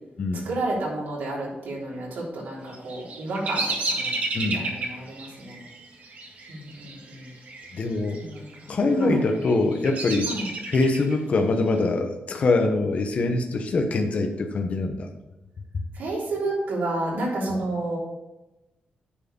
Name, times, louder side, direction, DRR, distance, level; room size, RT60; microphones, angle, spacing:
voice 1, 0.4-4.1 4.5-5.6 6.5-7.3 8.2-9.2 10.3-10.5 15.9-18.0, right 2 dB, 90° right, -4 dB, 3.5 m, -31 dB
Bird vocalization bird call bird song, 2.7-7.7 8.0-8.6 9.2-11.1, right 3 dB, 55° right, 1.6 m, -31 dB
voice 2, 4.3-4.6 7.7-8.2 8.7-10.3 10.6-15.1 15.7-15.8 17.5-17.6, left 3 dB, 45° left, 4 dB, 1.0 m, -24 dB
9.8 x 4.8 x 5.2 m, 0.99 s
wide cardioid pair, 165°, 3 cm